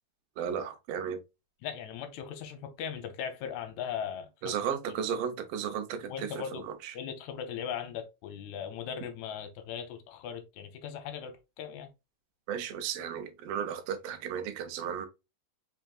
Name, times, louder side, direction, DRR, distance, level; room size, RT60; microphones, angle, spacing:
voice 1, 0.4-1.2 4.4-6.9 12.5-15.1, right 8 dB, 75° right, 1.4 m, -34 dB
voice 2, 1.6-4.6 6.1-6.6 6.9-11.9, left 8 dB, 75° left, 1.9 m, -38 dB
4.6 x 3.5 x 2.3 m
omnidirectional pair, 3.6 m